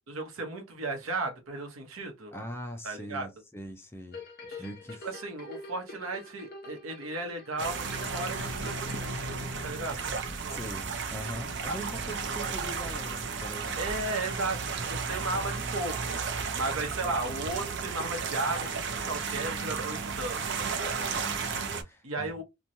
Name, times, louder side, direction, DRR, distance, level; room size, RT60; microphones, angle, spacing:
voice 1, 0.1-2.3 2.8-3.3 4.5-4.6 5.0-10.1 10.4-10.6 12.2-12.3 13.8-16.2 16.6-21.5 22.0-22.4, right 2 dB, 75° right, 0.9 m, -35 dB
voice 2, 2.3-4.2 4.6-5.1 10.5-13.8 21.1-22.4, equal, 10° left, 0.4 m, -42 dB
sound 1, 4.1-10.4 10.9-11.0, left 2 dB, 45° left, 0.8 m, -46 dB
sound 2, 7.6-21.8, right 5 dB, 55° right, 0.5 m, -34 dB
2.9 x 2.2 x 2.6 m
head